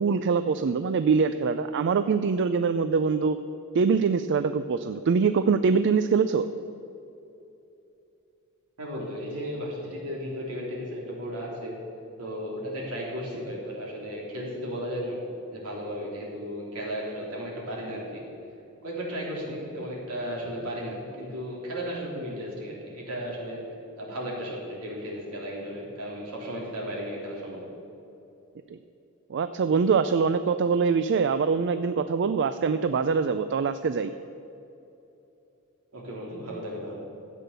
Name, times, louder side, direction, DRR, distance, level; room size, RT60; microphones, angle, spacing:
voice 1, 0.0-3.4 3.7-6.5 28.7-28.8 29.3-34.1, right 5 dB, 55° right, 11 dB, 0.4 m, -24 dB
voice 2, 8.8-11.7 12.2-15.2 15.5-18.3 18.8-23.6 24.0-27.6 35.9-36.9, equal, 75° right, -3 dB, 3.6 m, -35 dB
13.0 x 8.4 x 6.8 m, 2.9 s
head